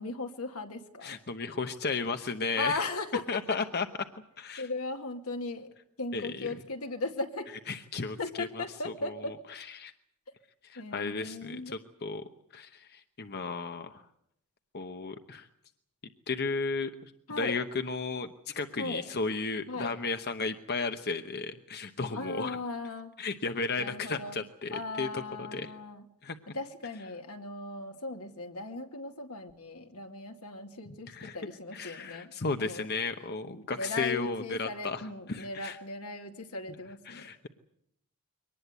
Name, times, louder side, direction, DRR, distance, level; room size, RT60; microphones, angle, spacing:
voice 1, 0.0-1.2 2.6-3.4 4.6-5.7 6.0-7.5 8.2-9.3 10.8-11.7 17.3-17.6 18.8-19.0 19.7-20.0 22.1-23.1 23.8-24.4 24.7-26.0 26.5-32.3 32.6-32.9 33.8-37.3, left 3 dB, 75° left, 5 dB, 2.4 m, -37 dB
voice 2, 1.0-2.8 3.3-3.9 4.4-4.7 6.1-6.6 7.7-9.9 10.6-12.2 12.5-14.0 14.7-15.5 16.3-17.1 17.4-22.6 23.2-25.7 26.2-26.6 31.1-31.4 31.7-35.8 37.1-37.5, left 4 dB, 45° left, 8 dB, 1.0 m, -34 dB
23.5 x 19.5 x 8.2 m, 0.75 s
head